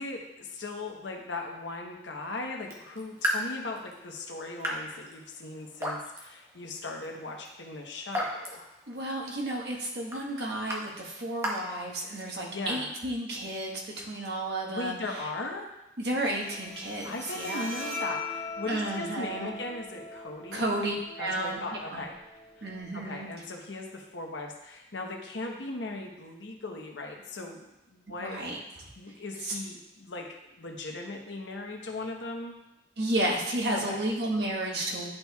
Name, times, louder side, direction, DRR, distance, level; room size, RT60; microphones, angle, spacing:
voice 1, 0.0-8.7 12.5-12.9 14.7-15.7 17.0-20.8 21.2-22.2 22.6-27.6 27.9-28.4 29.0-32.5 33.7-34.0, left 2 dB, 90° left, 2 dB, 1.0 m, -38 dB
Raindrop / Drip, 2.6-12.5, equal, 15° right, 1.0 m, -38 dB
voice 2, 8.9-15.0 16.0-17.7 18.7-19.5 20.5-22.0 22.6-23.3 28.2-28.6 29.4-29.6 33.0-35.1, right 1 dB, 65° right, -2 dB, 1.4 m, -32 dB
Bowed string instrument, 16.3-23.3, left 3 dB, 15° left, 1.7 m, -41 dB
11.0 x 4.3 x 2.3 m, 0.94 s
head